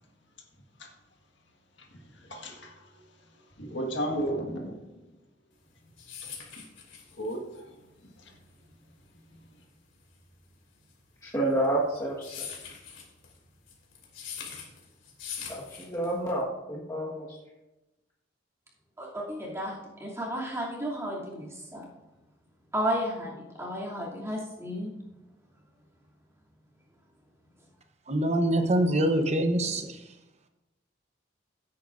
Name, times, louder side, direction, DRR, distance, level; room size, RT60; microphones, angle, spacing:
voice 1, 1.8-3.0 3.3-4.8 6.2-6.6 7.2-8.3, right 1 dB, 65° left, 1 dB, 1.7 m, -36 dB
sound 1, 5.6-16.4, left 7 dB, 85° left, 2.7 m, -43 dB
voice 2, 11.2-12.5 15.5-17.3, right 1 dB, 20° left, -7 dB, 1.5 m, -29 dB
voice 3, 19.0-19.7 20.0-21.9 22.7-24.9, equal, 15° right, -5 dB, 2.7 m, -33 dB
voice 4, 28.1-30.0, right 1 dB, 35° right, 6 dB, 1.0 m, -25 dB
16.5 x 8.7 x 2.6 m, 1.0 s
head